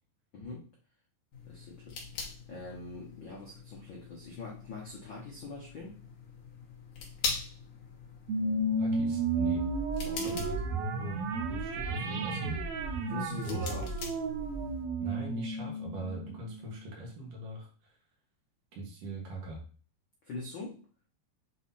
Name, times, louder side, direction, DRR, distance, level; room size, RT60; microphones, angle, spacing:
voice 1, 0.3-0.7 1.4-2.0 2.5-6.1 10.0-10.5 13.1-13.9 20.2-20.9, left 3 dB, 85° left, -2 dB, 1.0 m, -42 dB
sound 1, 1.3-14.9, left 4 dB, 60° left, 3.0 m, -43 dB
sound 2, 8.3-17.0, right 3 dB, 85° right, 2.8 m, -33 dB
voice 2, 8.8-9.7 10.2-11.2 11.5-13.0 13.4-13.7 15.0-17.9 18.7-19.6, right 1 dB, 65° right, -1 dB, 3.0 m, -41 dB
8.0 x 3.2 x 4.1 m, 0.41 s
omnidirectional pair, 4.2 m